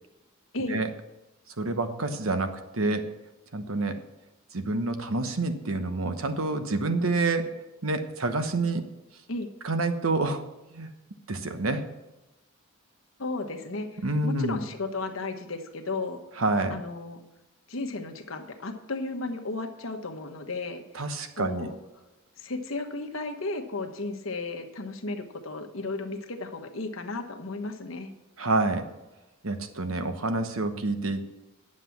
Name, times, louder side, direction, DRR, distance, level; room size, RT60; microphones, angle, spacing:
voice 1, 1.6-3.1 3.5-4.0 4.5-7.5 7.8-8.9 9.6-10.4 10.7-10.9 11.3-11.9 14.0-14.6 16.4-16.7 20.9-21.7 28.4-28.9 29.4-31.2, right 2 dB, 75° right, 8 dB, 1.1 m, -28 dB
voice 2, 13.2-16.2 16.7-17.2 17.7-20.8 21.3-21.7 22.4-28.1, left 3 dB, 70° left, 6 dB, 1.2 m, -34 dB
9.9 x 7.5 x 5.9 m, 1.0 s
head